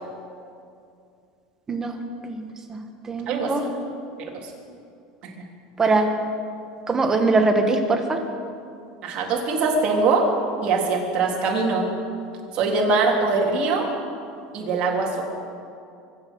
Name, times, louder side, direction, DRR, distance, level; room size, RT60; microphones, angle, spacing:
voice 1, 2.2-2.8 3.1-3.7 5.8-6.1 6.9-8.2, right 3 dB, 20° right, 5 dB, 1.6 m, -22 dB
voice 2, 9.0-10.3 10.6-11.9 12.5-13.9 14.5-15.2, right 3 dB, 45° right, -1 dB, 3.4 m, -22 dB
24.0 x 8.8 x 6.4 m, 2.5 s
supercardioid pair, 125°, 3 cm